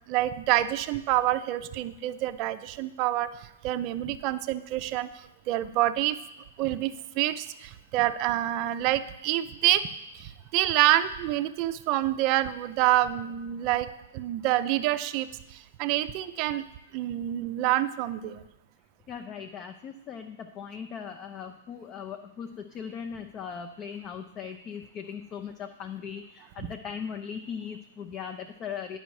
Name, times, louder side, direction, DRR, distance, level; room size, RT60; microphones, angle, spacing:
voice 1, 0.1-3.3 3.6-6.2 6.6-9.8 10.1-16.6 16.9-18.4, right 14 dB, 40° right, 12 dB, 0.5 m, -27 dB
voice 2, 19.1-29.0, left 7 dB, 30° left, 6 dB, 0.5 m, -39 dB
10.0 x 5.5 x 4.7 m, 0.91 s
figure-of-eight pair, 110°, 0 cm